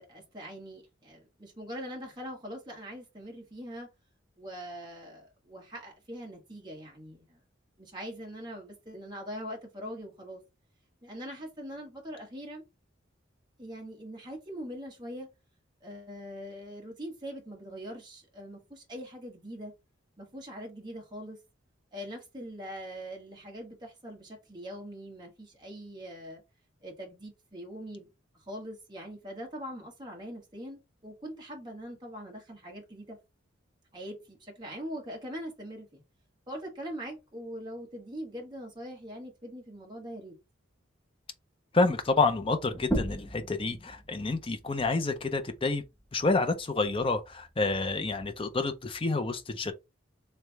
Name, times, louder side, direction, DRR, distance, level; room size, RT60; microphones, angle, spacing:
voice 1, 0.0-3.9 4.4-7.4 7.8-10.4 11.0-12.6 13.6-15.3 15.8-19.7 20.2-21.4 21.9-26.4 26.8-28.1 28.4-33.2 33.9-36.0 36.5-40.4, equal, 25° right, 1.4 m, -42 dB
voice 2, 41.7-45.8 46.1-49.7, left 3 dB, 30° left, 0.6 m, -28 dB
sound 1, 42.7-47.9, right 1 dB, 10° left, 0.9 m, -39 dB
3.3 x 3.2 x 3.4 m
head